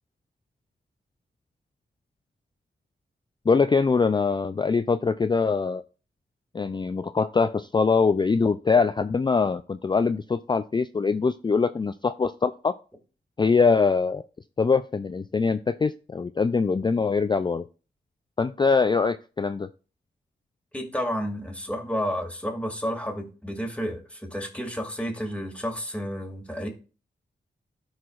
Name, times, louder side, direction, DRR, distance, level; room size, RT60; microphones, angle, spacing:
voice 1, 3.5-5.8 6.5-12.7 13.4-14.2 14.6-17.7 18.4-19.7, left 4 dB, 25° left, 0.3 m, -23 dB
voice 2, 20.7-26.7, equal, 5° left, 2.3 m, -31 dB
12.5 x 4.8 x 2.4 m
cardioid pair, 45°, 19 cm